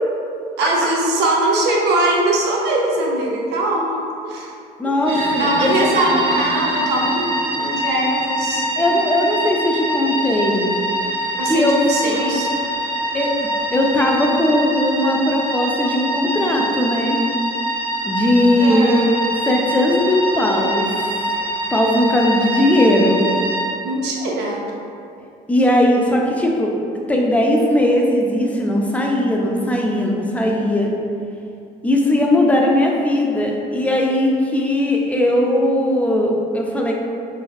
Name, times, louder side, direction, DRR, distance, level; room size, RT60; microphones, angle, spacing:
voice 1, 0.6-4.5 4.8-8.7 11.4-12.5 18.6-19.1 23.8-24.7, right 2 dB, 75° right, -2 dB, 0.5 m, -21 dB
voice 2, 4.8-5.5 8.8-10.7 11.4-12.4 13.1-13.3 13.7-17.2 18.0-19.0 19.4-20.9 21.7-23.2 25.5-26.7 27.1-30.9 31.8-36.9, left 1 dB, 10° left, -1 dB, 0.3 m, -18 dB
sound 1, 5.1-23.6, right 1 dB, 30° right, 0.6 m, -24 dB
3.2 x 2.3 x 2.3 m, 2.5 s
cardioid pair, 110°, 17 cm